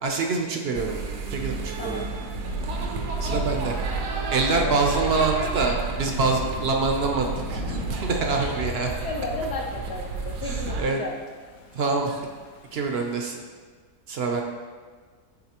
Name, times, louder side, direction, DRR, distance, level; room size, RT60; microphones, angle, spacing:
voice 1, 0.0-1.0 1.3-2.0 3.2-3.7 4.3-8.9 10.4-11.0 11.7-12.3 12.7-13.4 14.1-14.4, right 3 dB, 60° right, 2 dB, 0.6 m, -25 dB
sound 1, 0.7-10.8, right 4 dB, 90° right, 1.3 m, -31 dB
Thunder / Rain, 1.4-13.2, left 2 dB, 85° left, 1.3 m, -43 dB
voice 2, 1.8-2.1 4.5-4.8 8.3-8.5 9.0-11.2, left 2 dB, 60° left, -3 dB, 0.8 m, -33 dB
10.5 x 4.0 x 2.9 m, 1.5 s
omnidirectional pair, 1.7 m